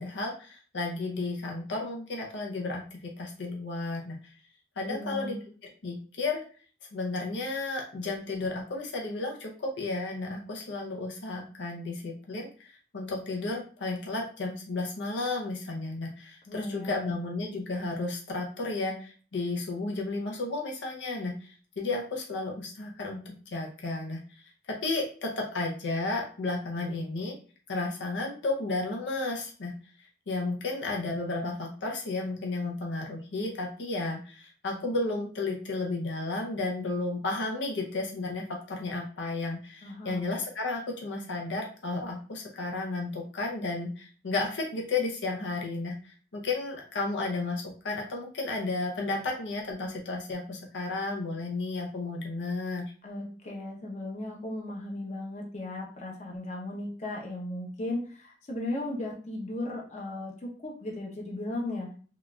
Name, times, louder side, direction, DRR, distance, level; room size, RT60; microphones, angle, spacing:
voice 1, 0.0-4.3 4.8-5.4 5.8-6.4 6.9-23.2 23.5-27.4 27.7-29.7 30.3-52.9, left 3 dB, 75° left, 0 dB, 0.6 m, -33 dB
voice 2, 4.9-5.4 16.5-17.1 39.8-40.2 53.0-61.9, left 1 dB, 40° left, 0 dB, 0.8 m, -36 dB
3.7 x 2.4 x 2.3 m, 0.40 s
head